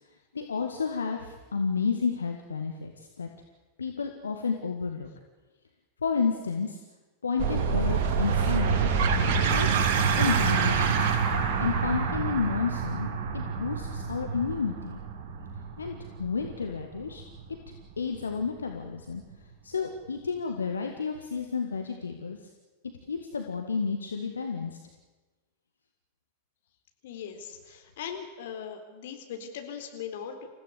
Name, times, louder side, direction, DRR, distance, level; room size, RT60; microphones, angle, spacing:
voice 1, 0.3-3.3 3.8-5.1 6.0-6.8 7.2-8.9 9.4-9.9 10.2-11.1 11.6-13.1 13.3-15.0 15.8-17.2 18.0-19.2 19.6-22.4 23.1-24.7, left 5 dB, 75° left, 4 dB, 1.8 m, -31 dB
sound 1, 7.4-18.5, right 6 dB, 50° right, 3.0 m, -27 dB
voice 2, 27.0-30.5, left 7 dB, 55° left, 5 dB, 3.7 m, -39 dB
28.0 x 16.0 x 8.3 m, 1.2 s
figure-of-eight pair, 90°, 0 cm